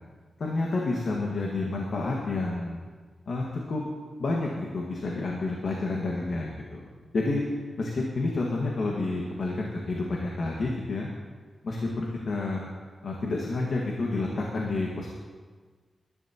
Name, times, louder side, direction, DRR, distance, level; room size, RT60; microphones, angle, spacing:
voice 1, 0.4-2.8 3.3-3.8 4.2-6.8 7.1-7.4 7.8-11.1 11.6-12.7 13.0-15.1, left 2 dB, 60° left, -2 dB, 1.7 m, -29 dB
21.0 x 11.5 x 2.9 m, 1.5 s
wide cardioid pair, 145°, 0 cm